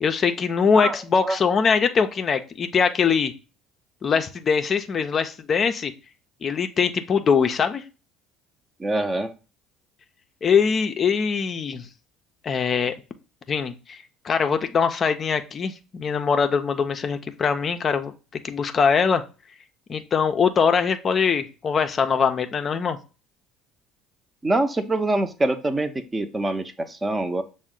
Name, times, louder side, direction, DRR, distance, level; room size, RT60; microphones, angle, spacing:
voice 1, 0.0-3.3 4.0-5.9 6.4-7.8 10.4-11.9 12.4-12.9 13.5-14.0 14.2-19.2 19.9-23.0, left 6 dB, 40° left, 8 dB, 0.4 m, -22 dB
voice 2, 8.8-9.3 24.4-27.4, right 2 dB, 20° right, 9 dB, 0.6 m, -24 dB
6.1 x 2.1 x 3.7 m, 0.33 s
hypercardioid pair, 60°, 0 cm